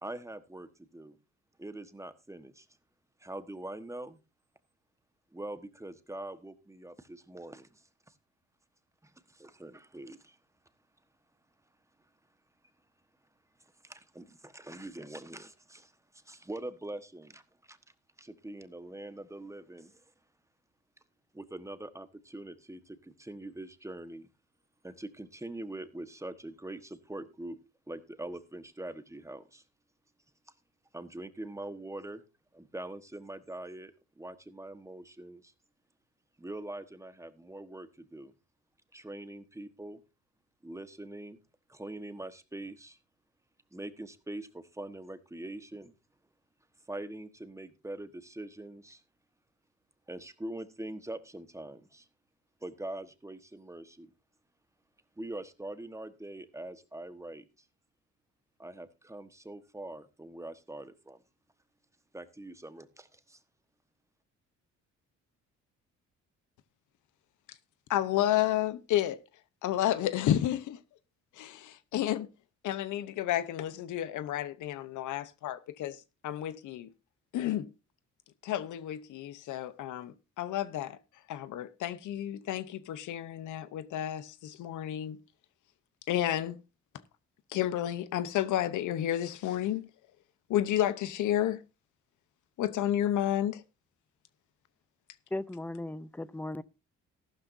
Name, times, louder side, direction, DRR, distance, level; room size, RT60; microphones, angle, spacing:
voice 1, 0.0-1.2 1.6-2.7 3.2-4.2 5.3-8.1 9.0-10.4 13.8-17.4 17.7-17.8 18.2-20.0 21.3-24.3 24.8-27.6 27.9-29.6 30.9-32.2 32.5-35.5 36.4-38.3 38.9-40.0 40.6-41.4 41.7-43.0 43.7-45.9 46.9-49.0 50.1-52.1 52.6-54.1 55.2-57.4 58.6-61.2 62.1-63.4, right 1 dB, 10° right, 1.3 m, -43 dB
voice 2, 67.9-69.2 69.6-70.8 71.4-72.3 72.6-76.0 76.2-76.9 77.3-77.7 78.4-81.0 81.3-85.2 86.1-86.6 87.5-89.9 90.5-91.6 92.6-93.6, left 12 dB, 80° left, 0.9 m, -31 dB
voice 3, 95.3-96.6, left 1 dB, 5° left, 0.5 m, -37 dB
14.0 x 12.0 x 2.7 m
cardioid pair, 90°, 30 cm